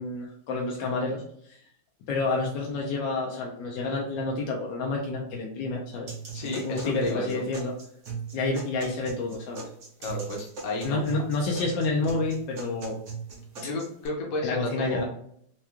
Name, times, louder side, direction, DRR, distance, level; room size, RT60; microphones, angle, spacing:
voice 1, 0.0-1.6 2.1-6.1 6.4-7.7 8.3-9.7 10.8-13.0 14.4-15.0, left 3 dB, 75° left, -2 dB, 1.1 m, -29 dB
sound 1, 6.1-14.1, right 5 dB, 55° right, 0.8 m, -39 dB
voice 2, 6.3-7.4 10.0-11.0 13.6-15.0, left 2 dB, 55° left, -2 dB, 1.0 m, -32 dB
4.7 x 2.2 x 2.9 m, 0.68 s
omnidirectional pair, 2.4 m